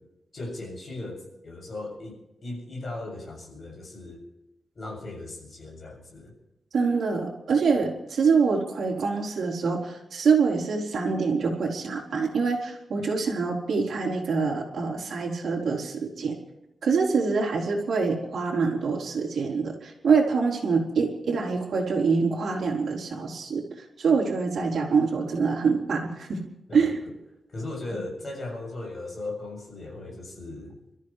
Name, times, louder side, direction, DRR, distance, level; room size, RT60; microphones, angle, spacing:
voice 1, 0.3-4.2 4.8-6.3 13.0-13.1 26.7-26.9 27.5-30.8, left 2 dB, 35° left, 0 dB, 7.1 m, -37 dB
voice 2, 6.7-16.4 16.8-26.4 26.7-27.0, right 5 dB, 65° right, -1 dB, 4.1 m, -25 dB
29.5 x 14.0 x 3.3 m, 0.92 s
wide cardioid pair, 160°, 0 cm